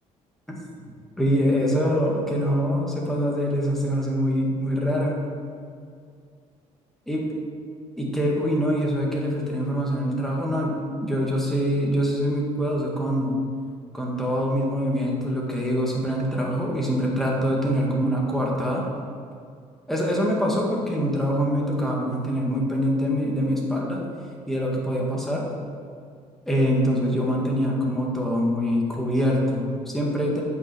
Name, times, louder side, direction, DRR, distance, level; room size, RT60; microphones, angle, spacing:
voice 1, 1.2-5.2 7.1-7.3 8.0-13.4 13.9-18.8 19.9-24.0 24.5-25.5 26.5-30.4, equal, 5° left, -3 dB, 2.0 m, -24 dB
8.3 x 5.8 x 6.3 m, 2.2 s
cardioid pair, 105°, 13 cm